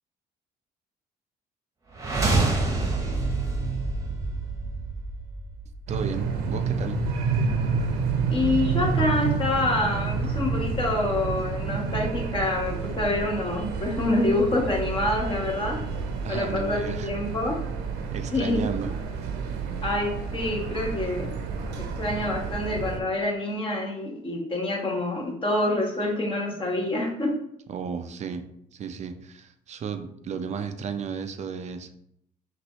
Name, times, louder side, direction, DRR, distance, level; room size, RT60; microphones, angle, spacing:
sound 1, 1.9-5.9, right 3 dB, 20° right, 1.1 m, -27 dB
voice 1, 5.9-7.0 16.2-17.1 18.1-18.9 27.7-28.5 28.7-31.9, right 6 dB, 45° right, 8 dB, 0.5 m, -33 dB
sound 2, 5.9-23.0, right 5 dB, 85° right, 0.9 m, -29 dB
voice 2, 8.3-15.8 16.3-17.6 18.3-18.7 19.8-21.3 22.0-27.3, left 2 dB, 30° left, -1 dB, 1.4 m, -26 dB
6.1 x 2.6 x 3.1 m, 0.74 s
cardioid pair, 110°, 17 cm